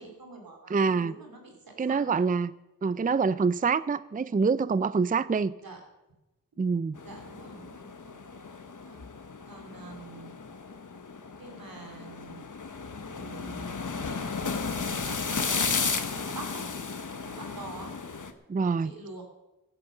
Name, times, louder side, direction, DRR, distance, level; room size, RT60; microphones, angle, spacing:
voice 1, 0.0-2.2 5.6-5.8 7.0-8.1 8.8-9.0 9.5-10.3 11.4-12.4 13.1-13.8 14.0-16.6 17.4-17.9 18.8-19.2, right 3 dB, 85° right, 3.1 m, -46 dB
voice 2, 0.7-1.2 1.8-2.5 2.8-5.5 6.6-7.0 18.5-18.9, right 5 dB, 25° right, 0.4 m, -26 dB
sound 1, 7.0-18.3, left 5 dB, 60° left, 1.3 m, -34 dB
16.5 x 8.8 x 6.6 m
cardioid pair, 45°, 34 cm